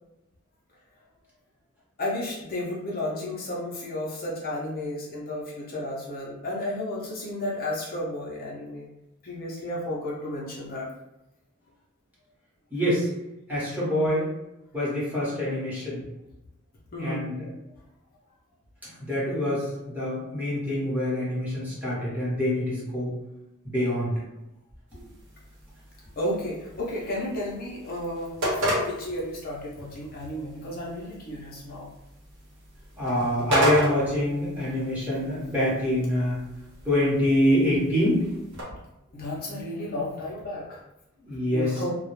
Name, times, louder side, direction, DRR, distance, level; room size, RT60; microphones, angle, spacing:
voice 1, 2.0-8.9 9.2-10.9 16.9-17.2 26.2-31.9 39.1-40.8 41.5-41.9, left 1 dB, 45° left, -5 dB, 0.5 m, -32 dB
voice 2, 12.7-13.1 13.5-14.3 14.7-16.0 17.0-17.5 19.1-19.7 19.9-23.1 23.6-24.1 33.0-36.4 36.8-38.3 41.2-41.8, left 1 dB, 10° right, -8 dB, 0.9 m, -25 dB
sound 1, 24.9-38.6, equal, 65° right, 0.8 m, -34 dB
2.2 x 2.0 x 3.0 m, 0.91 s
head